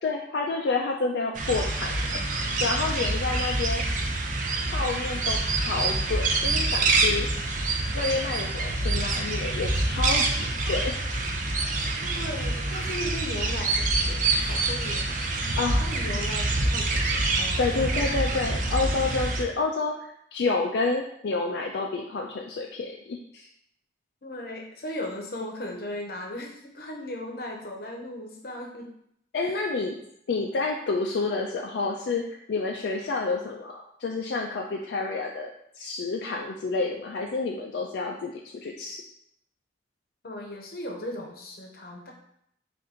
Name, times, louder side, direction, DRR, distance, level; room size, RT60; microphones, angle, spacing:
voice 1, 0.0-2.2 2.6-3.8 4.7-7.5 7.9-11.2 15.6-15.8 17.6-23.5 29.3-29.9 30.3-35.5 35.8-38.3 38.6-39.0, left 3 dB, 75° left, 1 dB, 0.4 m, -29 dB
sound 1, 1.3-19.4, right 2 dB, 45° right, 0.5 m, -26 dB
voice 2, 12.0-15.3 15.8-17.6 24.2-28.9 29.4-29.7 40.2-42.1, left 1 dB, 60° left, 1 dB, 0.8 m, -37 dB
4.3 x 2.5 x 3.7 m, 0.72 s
head